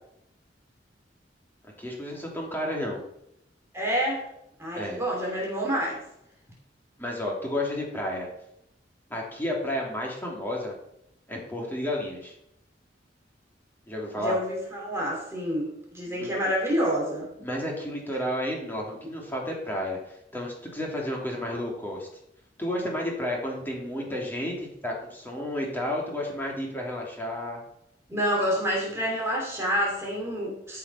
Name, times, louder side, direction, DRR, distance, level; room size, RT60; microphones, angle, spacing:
voice 1, 1.8-3.0 4.7-5.0 7.0-8.3 9.1-10.8 11.3-12.3 13.9-14.4 16.1-16.3 17.4-22.1 22.6-27.6, left 1 dB, 10° left, -2 dB, 2.8 m, -31 dB
voice 2, 3.7-4.2 4.6-6.0 14.2-17.3 28.1-30.8, equal, 15° right, -3 dB, 3.1 m, -28 dB
13.5 x 5.8 x 5.6 m, 0.79 s
head